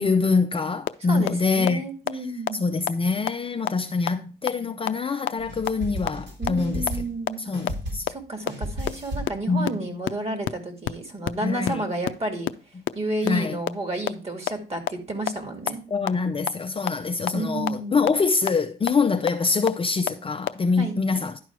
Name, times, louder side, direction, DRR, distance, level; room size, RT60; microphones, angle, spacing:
voice 1, 0.0-1.8 2.6-6.9 7.5-8.1 9.5-9.8 11.4-11.8 13.2-13.6 15.9-21.4, left 4 dB, 25° left, 0.6 m, -24 dB
sound 1, 0.9-1.0 1.3-1.4 1.7-1.8 2.1-2.2 2.5-2.6 2.9-3.0 3.3-3.4 3.7-3.8 4.1-4.2 4.5-4.6 4.9-5.0 5.3-5.4 5.7-5.8 6.1-6.2 6.5-6.6 6.9-7.0 7.3-7.4 7.7-7.8 8.1-8.2 8.5-8.6 8.9-9.0 9.3-9.4 9.7-9.8 10.0-10.1 10.4-10.5 10.8-10.9 11.2-11.3 11.6-11.7 12.0-12.1 12.5-12.6 12.9-13.0 13.3-13.4 13.7-13.8 14.1-14.2 14.5-14.6 14.9-15.0 15.3-15.4 15.7-15.8 16.1-16.2 16.5-16.6 16.9-17.0 17.3-17.4 17.7-17.8 18.1-18.2 18.5-18.6 18.9-19.0 19.3-19.4 19.7-19.8 20.1-20.2 20.5-20.6, left 14 dB, 75° left, 0.5 m, -24 dB
voice 2, 1.1-2.6 6.4-7.4 8.1-12.5 12.9-15.8 17.3-18.0 20.8-21.0, right 1 dB, 30° right, 2.4 m, -31 dB
sound 2, 5.4-7.3 7.5-8.2 8.5-9.4, equal, 65° right, 3.4 m, -34 dB
11.0 x 4.5 x 4.7 m
cardioid pair, 90°, 20 cm